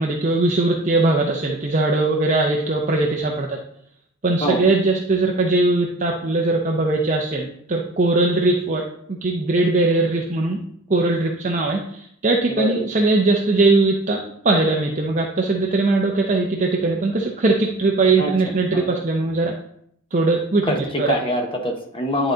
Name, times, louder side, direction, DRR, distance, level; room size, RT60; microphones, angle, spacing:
voice 1, 0.0-3.6 4.2-10.6 10.9-19.5 20.1-21.1, right 2 dB, 35° right, 0 dB, 0.6 m, -20 dB
voice 2, 21.1-22.3, equal, 25° left, 2 dB, 1.0 m, -24 dB
10.0 x 3.9 x 3.8 m, 0.70 s
head